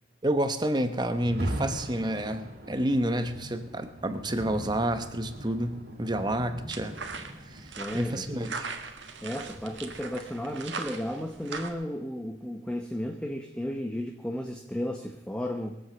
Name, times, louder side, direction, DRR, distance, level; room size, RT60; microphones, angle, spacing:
voice 1, 0.2-7.0 7.4-8.7, right 1 dB, 20° right, 9 dB, 0.9 m, -29 dB
Rain, 1.1-10.2, equal, 55° right, 2.8 m, -40 dB
sound 1, 6.7-11.7, right 4 dB, 75° right, 1.7 m, -40 dB
voice 2, 7.8-8.6 9.2-15.8, left 1 dB, 5° left, 4 dB, 0.8 m, -34 dB
22.5 x 8.0 x 6.8 m, 1.0 s
head